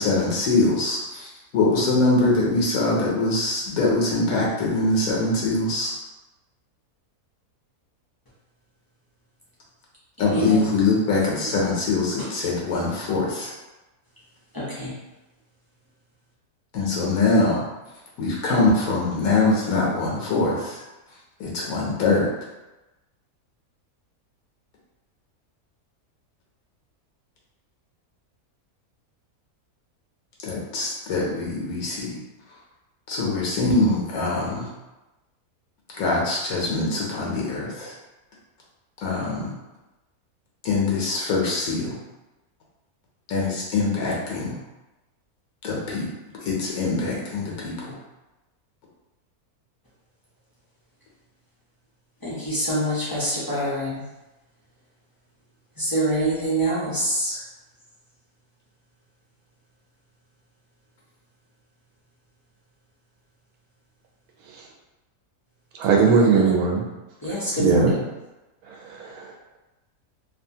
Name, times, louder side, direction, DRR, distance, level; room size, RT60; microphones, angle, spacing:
voice 1, 0.0-5.9 10.2-13.5 16.7-17.6 18.2-20.8 21.4-22.3 30.4-32.1 33.1-34.7 36.0-37.9 39.0-39.5 40.6-42.0 43.3-44.6 45.6-46.1 46.4-47.9, left 3 dB, 75° left, -3 dB, 1.1 m, -23 dB
voice 2, 10.2-10.6 11.4-11.5 12.2-12.3 14.5-15.0 52.2-54.0 55.8-57.4 66.0-66.4 67.2-68.1, right 1 dB, 35° left, -9 dB, 0.3 m, -26 dB
voice 3, 65.8-66.8 67.6-67.9 69.0-69.3, right 5 dB, 85° right, 0 dB, 1.1 m, -18 dB
2.8 x 2.4 x 2.6 m, 1.1 s
omnidirectional pair, 1.5 m